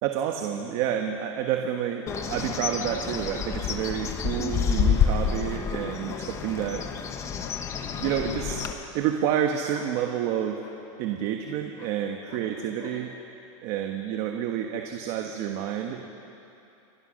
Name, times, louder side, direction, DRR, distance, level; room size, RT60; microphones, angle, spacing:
voice 1, 0.0-6.9 8.0-8.6 8.9-10.6 11.0-13.1 13.6-16.2, right 9 dB, 35° right, 4 dB, 1.4 m, -29 dB
Bird, 2.1-8.7, left 7 dB, 15° left, 1.1 m, -28 dB
sound 1, 4.9-5.2 6.1-6.3 7.3-7.6 8.7-8.9 9.7-9.9 10.6-10.8 11.8-12.0 12.3-12.5 12.8-13.0, left 7 dB, 75° left, 5.4 m, -47 dB
29.5 x 23.5 x 6.5 m, 2.8 s
supercardioid pair, 170°, 17 cm